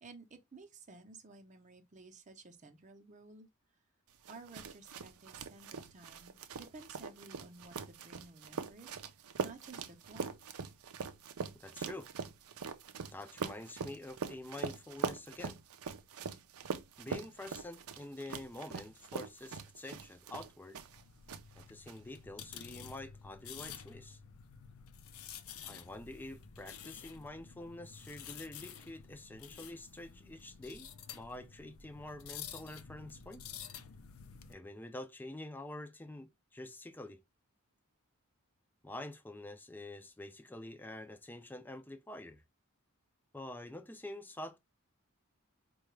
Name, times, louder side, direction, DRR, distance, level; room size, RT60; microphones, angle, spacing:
voice 1, 0.0-3.5 4.3-8.9 9.4-10.3, right 3 dB, 35° right, 0.6 m, -54 dB
sound 1, 4.2-21.0 21.3-21.9, right 5 dB, 80° right, 0.5 m, -42 dB
voice 2, 11.5-12.1 13.1-15.6 17.0-20.8 21.6-24.2 25.6-33.5 34.5-37.2 38.8-42.4 43.3-44.6, left 1 dB, 10° left, 0.4 m, -47 dB
sound 2, 20.9-34.5, left 8 dB, 75° left, 0.5 m, -50 dB
4.6 x 2.3 x 3.1 m
head